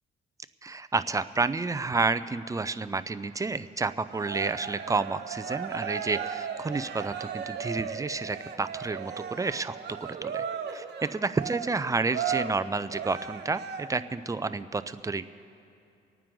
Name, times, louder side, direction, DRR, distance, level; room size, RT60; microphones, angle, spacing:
voice 1, 0.6-9.8 10.2-10.4 10.7-10.8 11.1-15.3, right 3 dB, 15° right, 12 dB, 0.5 m, -30 dB
Cheering, 4.1-14.1, right 7 dB, 55° right, 1.0 m, -36 dB
27.0 x 9.3 x 3.9 m, 2.6 s
cardioid pair, 90°, 20 cm